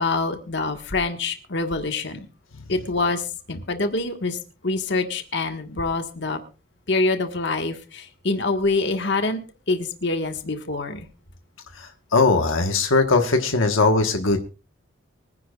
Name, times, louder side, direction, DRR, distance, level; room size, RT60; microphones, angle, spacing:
voice 1, 0.0-2.3 2.7-4.4 4.6-6.4 6.9-9.4 9.7-11.1, left 3 dB, 60° left, 5 dB, 1.5 m, -25 dB
voice 2, 11.8-14.4, left 3 dB, 80° left, 5 dB, 1.3 m, -20 dB
24.0 x 10.0 x 2.4 m, 0.33 s
head